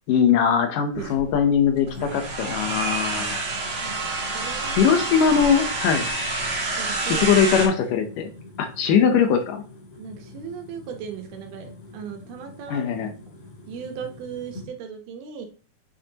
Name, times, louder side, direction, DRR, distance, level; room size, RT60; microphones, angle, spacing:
voice 1, 0.1-3.4 4.7-6.1 7.2-8.3 8.6-9.6 12.7-13.1, left 7 dB, 70° left, 6 dB, 2.2 m, -21 dB
sound 1, 0.9-7.7, right 3 dB, 50° right, 1.8 m, -28 dB
sound 2, 1.9-14.7, left 3 dB, 55° left, 3.3 m, -44 dB
voice 2, 4.3-4.9 5.8-5.9 6.8-7.3 8.9-9.1 10.0-12.9 13.7-15.5, right 7 dB, 90° right, 4 dB, 3.1 m, -37 dB
8.2 x 5.7 x 2.9 m, 0.36 s
omnidirectional pair, 4.3 m